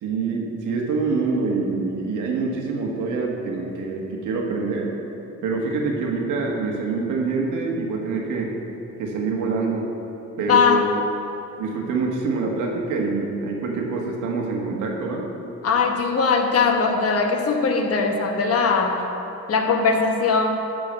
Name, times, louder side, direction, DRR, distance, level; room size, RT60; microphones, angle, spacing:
voice 1, 0.0-4.9 5.4-8.5 9.0-9.9 10.4-11.0 11.6-15.3, right 3 dB, 85° right, 0 dB, 1.5 m, -25 dB
voice 2, 10.5-10.9 15.6-19.1 19.5-20.5, left 5 dB, 50° left, 3 dB, 1.2 m, -20 dB
11.5 x 3.9 x 7.5 m, 3.0 s
cardioid pair, 90°, 30 cm